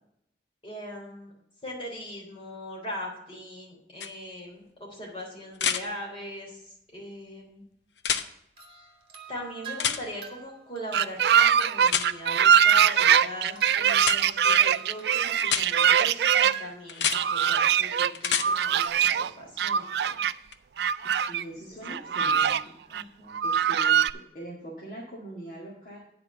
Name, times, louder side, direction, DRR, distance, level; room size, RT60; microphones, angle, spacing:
voice 1, 0.6-1.3 1.6-7.6 9.3-20.2 21.5-21.9 22.3-23.4, equal, 30° left, -3 dB, 3.4 m, -40 dB
sound 1, 4.0-4.1 5.6-5.8 8.0-8.3 9.8-10.0 11.9-12.1 14.0-14.2 15.4-15.7 16.9-17.2 18.2-18.5 20.5-20.6, left 8 dB, 85° left, 0.7 m, -27 dB
sound 2, 8.6-14.4 14.7-17.3 17.6-18.9, right 6 dB, 30° right, 1.5 m, -45 dB
sound 3, 10.9-16.5 17.1-18.1 18.4-19.3 19.6-20.3 20.8-21.4 21.8-22.6 22.9-23.0 23.3-24.1, right 8 dB, 70° right, 0.3 m, -22 dB
voice 2, 21.2-22.7 23.4-26.0, equal, 50° left, -4 dB, 1.9 m, -42 dB
9.2 x 4.8 x 7.8 m, 0.77 s
head